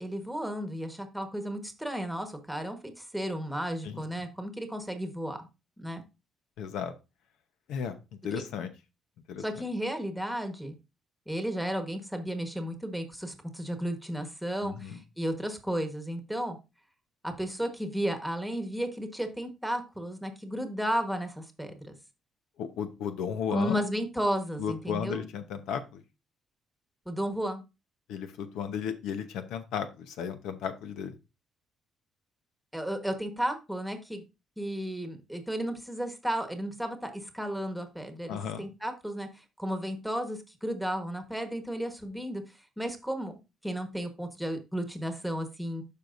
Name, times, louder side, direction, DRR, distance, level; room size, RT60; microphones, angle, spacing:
voice 1, 0.0-5.5 5.8-6.0 9.4-10.7 11.3-16.6 17.2-22.0 23.5-25.2 27.0-27.6 32.7-34.2 34.6-42.4 42.8-43.3 43.6-45.8, equal, ahead, 6 dB, 1.3 m, -33 dB
voice 2, 3.8-4.3 6.6-6.9 7.7-8.0 8.2-8.7 9.3-9.4 14.6-15.0 22.6-23.8 24.6-26.0 28.1-31.2 38.3-38.6, left 7 dB, 90° left, 9 dB, 0.9 m, -34 dB
12.0 x 4.7 x 2.6 m, 0.26 s
cardioid pair, 110°, 0 cm